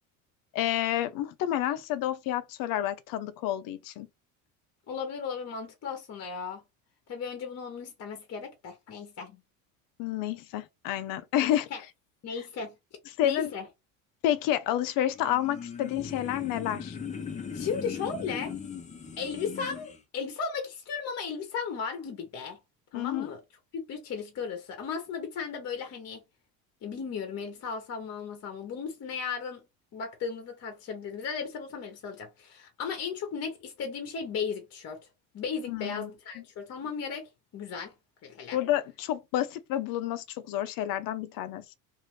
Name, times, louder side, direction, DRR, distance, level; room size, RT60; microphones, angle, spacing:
voice 1, 0.5-4.1 10.0-11.7 13.2-13.5 14.2-17.0 22.9-23.3 35.7-36.1 38.5-41.8, left 12 dB, 60° left, 0.6 m, -29 dB
voice 2, 4.9-6.6 7.1-9.4 11.7-11.8 12.2-12.7 13.2-13.7 17.5-18.5 19.2-22.6 22.9-23.4 23.7-26.2 26.8-29.6 29.9-35.0 35.3-37.9 38.2-38.6, left 6 dB, 40° left, 1.0 m, -36 dB
sound 1, 15.1-20.0, left 6 dB, 20° left, 0.7 m, -39 dB
2.7 x 2.5 x 3.1 m
supercardioid pair, 105°, 38 cm